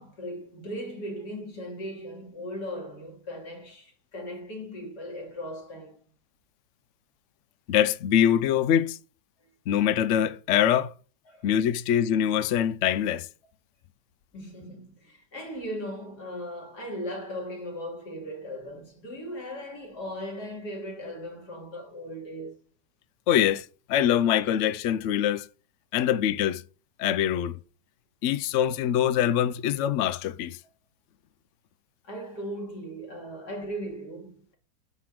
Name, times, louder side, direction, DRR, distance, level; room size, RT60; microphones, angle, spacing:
voice 1, 0.0-6.0 11.3-11.5 14.3-22.6 32.0-34.6, equal, 60° left, 2.8 m, -38 dB
voice 2, 7.7-9.0 9.7-10.9 11.4-13.3 23.3-25.5 25.9-26.6 27.0-27.6 28.2-30.6, left 10 dB, 85° left, 0.6 m, -24 dB
9.4 x 3.8 x 6.0 m
omnidirectional pair, 2.0 m